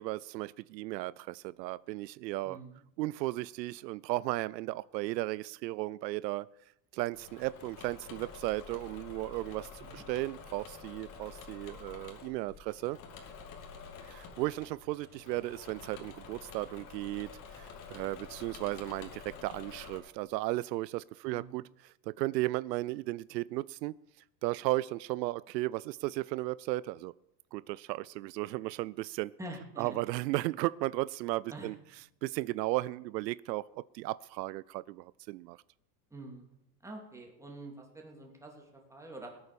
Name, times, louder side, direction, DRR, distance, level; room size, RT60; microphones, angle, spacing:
voice 1, 0.0-2.6 3.0-6.5 6.9-13.0 14.0-23.9 24.4-27.1 27.5-29.3 29.8-31.8 32.2-35.6, right 19 dB, 80° right, 19 dB, 0.5 m, -35 dB
voice 2, 2.4-2.8 9.8-10.0 21.2-21.6 29.4-30.0 31.5-31.7 36.1-36.4 36.8-39.4, right 2 dB, 5° right, 0 dB, 3.0 m, -46 dB
Engine / Mechanisms, 7.1-20.0, left 5 dB, 40° left, 2.9 m, -49 dB
18.5 x 8.7 x 6.9 m, 0.85 s
supercardioid pair, 135°, 49 cm